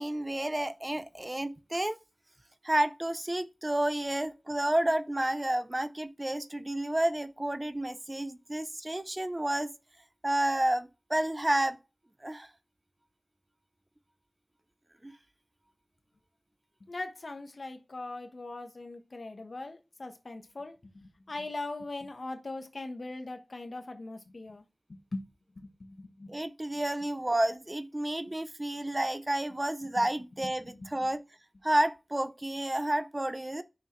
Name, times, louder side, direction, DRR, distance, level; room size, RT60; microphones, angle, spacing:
voice 1, 0.0-2.0 2.6-9.7 10.2-11.8 12.2-12.5 15.0-15.1 26.3-30.6 30.9-31.2 31.6-33.6, right 1 dB, 25° right, 0.5 m, -30 dB
voice 2, 16.8-24.6 24.9-25.2 25.6-26.4 29.8-29.9 30.4-31.1, left 2 dB, 70° left, 1.2 m, -41 dB
6.3 x 6.0 x 3.1 m
wide cardioid pair, 65°, 0 cm